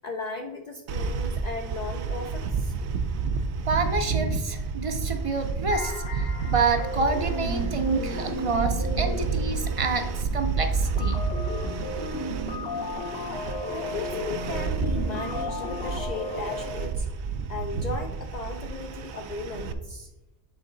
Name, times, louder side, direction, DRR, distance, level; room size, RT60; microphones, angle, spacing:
voice 1, 0.0-2.7 13.7-17.1 17.5-20.1, left 3 dB, 50° left, 3 dB, 0.5 m, -36 dB
sound 1, 0.9-19.7, right 4 dB, 85° right, 0.9 m, -30 dB
voice 2, 3.7-11.2, right 4 dB, 40° right, 6 dB, 0.5 m, -28 dB
sound 2, 5.7-16.7, left 1 dB, 70° left, 1.2 m, -34 dB
8.3 x 3.8 x 3.8 m, 0.98 s
omnidirectional pair, 1.1 m